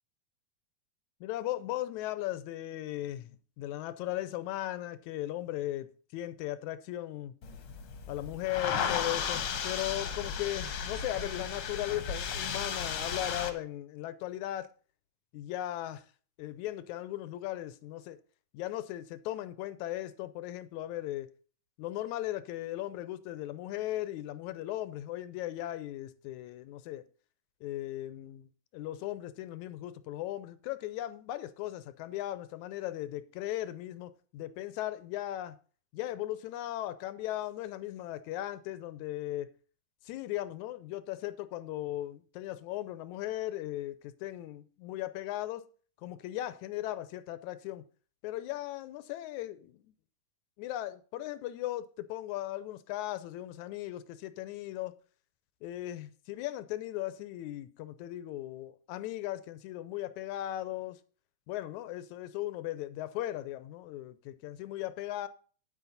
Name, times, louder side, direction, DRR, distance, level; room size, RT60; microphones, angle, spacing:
voice 1, 1.2-3.3 3.6-7.3 8.1-14.7 15.3-16.1 16.4-18.2 18.5-21.3 21.8-27.1 27.6-35.6 35.9-39.5 40.1-45.7 46.0-47.8 48.2-49.9 50.6-54.9 55.6-61.0 61.5-65.3, left 14 dB, 80° left, 2.0 m, -37 dB
sound 1, 7.4-13.5, left 7 dB, 60° left, 1.6 m, -35 dB
9.5 x 8.4 x 4.0 m
omnidirectional pair, 3.5 m